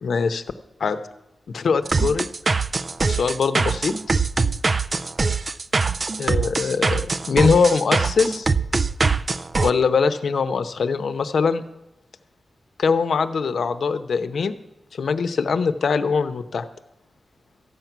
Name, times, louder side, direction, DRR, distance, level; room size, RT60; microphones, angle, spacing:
voice 1, 0.0-0.4 0.8-1.0 1.5-2.6 3.1-3.9 6.2-8.5 9.6-11.6 12.8-14.5 14.9-16.6, left 5 dB, 75° left, 10 dB, 0.8 m, -22 dB
sound 1, 1.8-9.7, right 4 dB, 35° right, 0.4 m, -22 dB
14.0 x 6.0 x 9.2 m, 0.91 s
wide cardioid pair, 150°, 0 cm